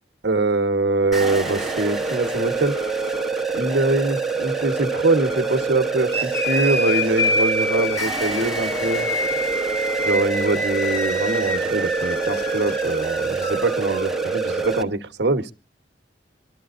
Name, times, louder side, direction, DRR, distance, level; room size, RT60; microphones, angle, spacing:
voice 1, 0.2-2.8 3.5-9.1 10.0-15.5, right 2 dB, 65° right, 8 dB, 1.1 m, -23 dB
sound 1, 1.1-14.8, right 4 dB, ahead, 1.2 m, -26 dB
sound 2, 6.1-14.0, left 2 dB, 15° left, 1.7 m, -27 dB
24.0 x 12.5 x 2.5 m, 0.32 s
head